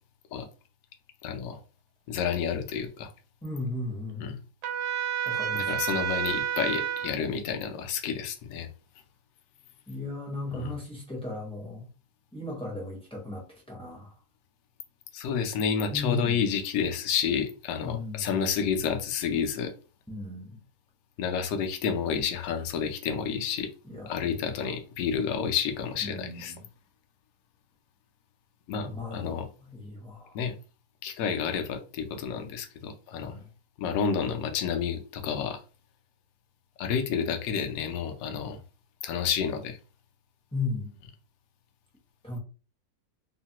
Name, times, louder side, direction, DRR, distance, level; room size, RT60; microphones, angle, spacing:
voice 1, 1.2-1.6 2.1-3.1 4.2-4.4 5.5-8.7 10.5-10.7 15.1-19.7 21.2-23.7 24.1-26.5 28.7-29.5 30.3-30.5 31.0-33.4 33.8-35.6 36.8-38.6 39.0-39.8, left 7 dB, 70° left, 0.9 m, -30 dB
voice 2, 3.4-4.3 5.2-5.7 9.9-11.9 12.3-14.1 15.9-16.3 17.8-18.3 20.1-20.6 23.8-24.6 26.0-26.6 28.9-30.4 33.2-33.5 40.5-40.9 42.2-42.4, left 2 dB, 5° left, 0.5 m, -36 dB
Trumpet, 4.6-7.1, right 8 dB, 80° right, 1.2 m, -29 dB
3.1 x 2.1 x 2.8 m
omnidirectional pair, 1.7 m